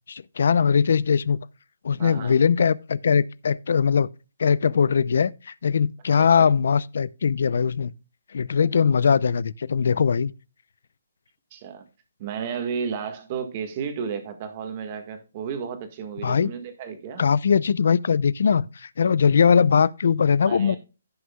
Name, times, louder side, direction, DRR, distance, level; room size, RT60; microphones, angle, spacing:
voice 1, 0.1-1.4 1.8-4.1 4.4-7.9 8.3-10.3 16.2-16.5 17.2-20.8, left 6 dB, 55° left, 0.5 m, -21 dB
voice 2, 2.0-2.3 6.1-6.5 11.5-11.8 12.2-17.2 20.5-20.8, right 6 dB, 25° right, 1.5 m, -33 dB
16.0 x 6.3 x 2.3 m
hypercardioid pair, 175°, 0 cm